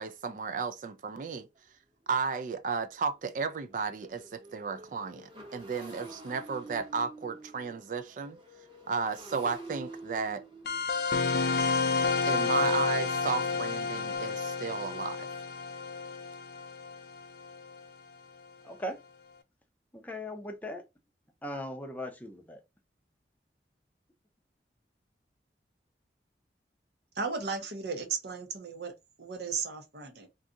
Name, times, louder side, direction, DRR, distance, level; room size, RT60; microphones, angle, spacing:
voice 1, 0.0-1.5 2.1-8.4 8.9-10.4 12.3-15.3, right 5 dB, 45° right, 0.3 m, -34 dB
Motorcycle, 1.6-1.7 2.1-2.3 2.6-14.2, right 2 dB, 25° right, 1.0 m, -49 dB
sound 1, 10.7-17.8, left 4 dB, 60° left, 0.4 m, -30 dB
voice 2, 18.6-19.0 19.9-20.8 21.4-22.6, left 1 dB, 10° left, 0.5 m, -38 dB
voice 3, 27.2-28.9 29.2-30.3, right 5 dB, 70° right, 0.8 m, -35 dB
2.6 x 2.4 x 3.6 m
head